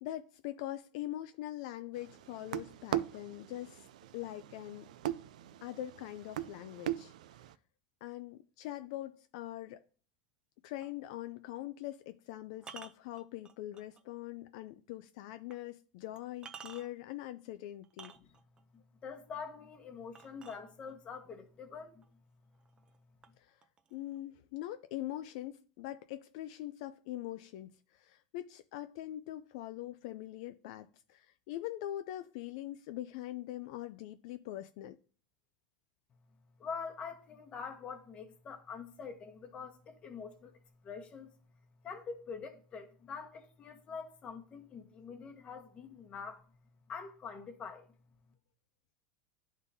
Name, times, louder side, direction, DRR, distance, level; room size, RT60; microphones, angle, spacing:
voice 1, 0.0-3.9 4.1-4.9 5.6-7.1 8.0-9.8 10.6-18.1 23.4-23.6 23.9-35.0, left 14 dB, 65° left, 0.3 m, -43 dB
sound 1, 2.0-7.5, right 13 dB, 85° right, 0.3 m, -40 dB
sound 2, 10.8-11.0 12.6-14.0 14.5-14.6 15.5-15.6 16.2-17.1 17.8-18.6 20.1-21.1 22.0-22.1 22.5-23.0 23.2-24.2, right 6 dB, 25° right, 0.4 m, -51 dB
voice 2, 19.0-22.0 36.6-41.3 41.8-46.4 46.9-47.9, left 5 dB, 30° left, 1.1 m, -45 dB
11.0 x 3.6 x 2.7 m
supercardioid pair, 130°, 4 cm